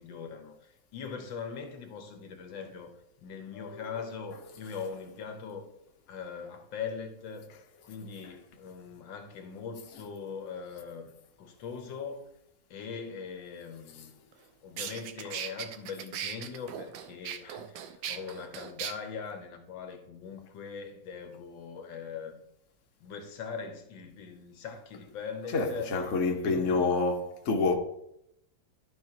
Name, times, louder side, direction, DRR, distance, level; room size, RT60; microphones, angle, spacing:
voice 1, 0.0-5.7 6.1-7.5 7.8-11.1 11.4-12.3 12.7-14.2 14.6-22.4 23.0-25.9 26.4-26.9, left 6 dB, 80° left, 1.7 m, -41 dB
voice 2, 3.5-4.8 8.2-8.3 9.9-10.0 14.0-14.1 15.2-15.4 25.5-27.7, left 3 dB, 45° left, 1.3 m, -30 dB
sound 1, 14.3-14.4 14.8-18.9, right 9 dB, 80° right, 1.4 m, -38 dB
12.5 x 5.0 x 2.9 m
omnidirectional pair, 2.0 m